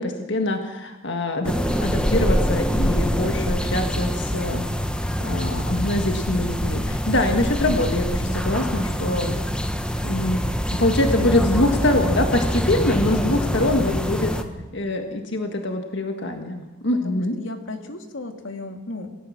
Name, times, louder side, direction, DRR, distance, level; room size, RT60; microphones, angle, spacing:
voice 1, 0.0-4.6 5.2-9.4 10.0-10.4 10.7-14.3 14.7-17.4, left 1 dB, 65° left, 4 dB, 1.8 m, -24 dB
sound 1, 1.4-14.4, equal, 5° left, 1.3 m, -24 dB
voice 2, 13.6-13.9 14.3-14.6 17.0-19.1, left 2 dB, 85° left, 5 dB, 2.4 m, -35 dB
27.5 x 17.5 x 7.4 m, 1.2 s
head